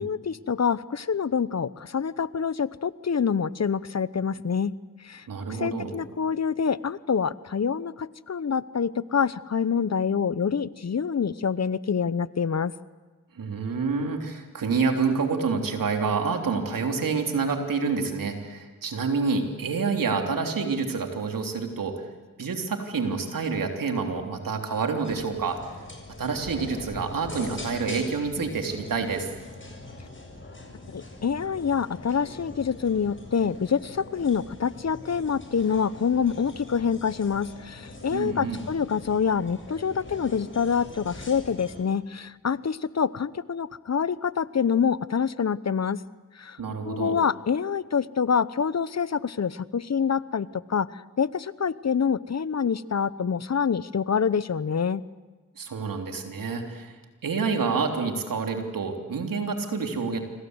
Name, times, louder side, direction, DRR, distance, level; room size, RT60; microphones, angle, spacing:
voice 1, 0.0-4.7 5.0-12.7 30.9-46.0 46.3-46.6 46.8-55.0, left 6 dB, 55° left, 17 dB, 1.0 m, -26 dB
voice 2, 5.3-5.9 13.3-22.0 22.4-25.7 26.2-29.3 38.1-38.6 46.6-47.2 55.6-60.2, right 5 dB, 85° right, 4 dB, 3.4 m, -28 dB
sound 1, 25.0-41.8, left 2 dB, 35° left, 7.2 m, -42 dB
27.0 x 24.5 x 8.0 m, 1.3 s
cardioid pair, 45°, 33 cm